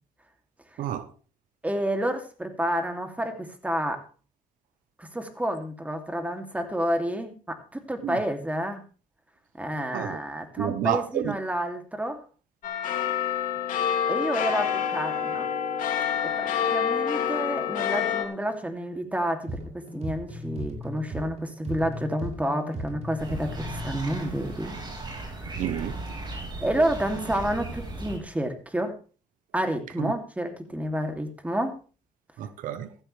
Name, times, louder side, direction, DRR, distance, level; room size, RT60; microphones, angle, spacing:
voice 1, 0.8-1.1 8.0-8.2 9.9-10.2 10.6-11.4 25.6-26.0 30.0-30.1 32.4-32.9, right 11 dB, 85° right, 1.0 m, -30 dB
voice 2, 1.6-4.0 5.0-7.3 7.7-8.8 9.6-12.2 14.1-15.5 16.4-24.8 25.2-25.5 26.6-28.9 29.5-31.8, equal, 10° right, 2.8 m, -29 dB
sound 1, 12.6-18.2, left 8 dB, 80° left, 2.7 m, -27 dB
sound 2, 19.5-24.0, equal, 50° right, 5.1 m, -37 dB
sound 3, 23.2-28.2, right 2 dB, 35° right, 5.2 m, -37 dB
15.0 x 13.5 x 3.4 m
cardioid pair, 90°, 14 cm